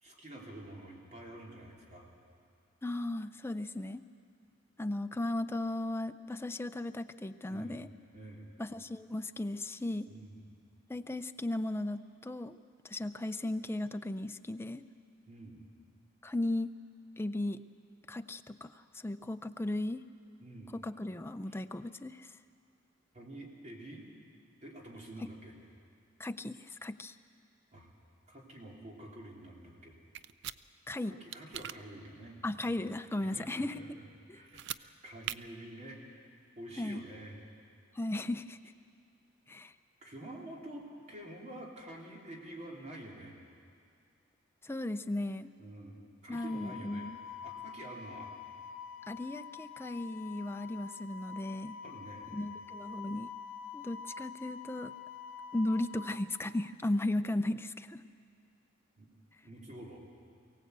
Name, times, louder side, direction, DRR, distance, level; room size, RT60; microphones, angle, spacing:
voice 1, 0.0-2.1 7.5-7.8 8.1-8.5 10.1-10.5 15.3-15.6 20.4-20.7 21.5-21.6 23.1-24.1 24.6-25.6 27.7-27.9 28.3-30.0 31.0-37.4 40.0-43.4 45.6-47.1 47.4-48.3 51.8-52.3 59.0-59.1 59.4-60.0, right 1 dB, 40° right, -2 dB, 3.5 m, -48 dB
voice 2, 2.8-4.0 4.8-7.9 8.6-10.1 10.9-12.6 12.8-14.8 16.2-16.7 17.2-17.6 18.1-20.0 20.7-22.3 26.2-27.1 30.9-31.1 32.4-34.0 34.3-34.4 36.8-37.0 38.0-38.6 39.5-39.7 44.6-45.5 46.3-47.2 49.1-51.8 52.3-53.3 53.7-54.9 55.5-58.0, left 1 dB, 10° left, 9 dB, 0.5 m, -36 dB
sound 1, 30.1-30.6 31.3-31.8 34.5-34.8 35.2-35.4, right 12 dB, 65° right, 0.5 m, -40 dB
Wind instrument woodwind instrument, 46.3-56.2, left 7 dB, 75° left, 1.2 m, -46 dB
23.5 x 17.5 x 8.1 m, 2.3 s
head